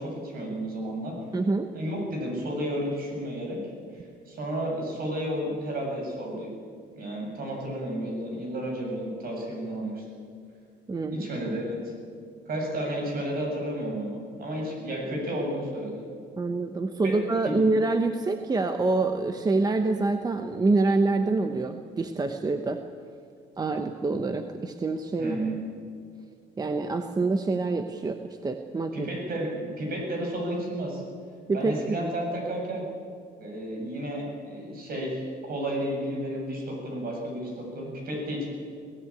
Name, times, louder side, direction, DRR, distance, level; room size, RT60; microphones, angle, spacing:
voice 1, 0.0-1.2 1.7-3.6 3.9-6.5 6.9-10.0 11.1-11.9 12.5-16.0 17.0-17.2 17.4-17.6 25.2-25.6 28.9-31.0 31.5-32.8 33.4-38.5, right 1 dB, 55° right, 0 dB, 7.5 m, -32 dB
voice 2, 1.3-1.7 10.9-11.3 16.4-22.8 23.6-25.4 26.6-28.2 28.4-29.1 31.5-32.0, right 3 dB, 20° right, 6 dB, 1.0 m, -26 dB
23.0 x 17.5 x 8.6 m, 2.2 s
cardioid pair, 140°, 18 cm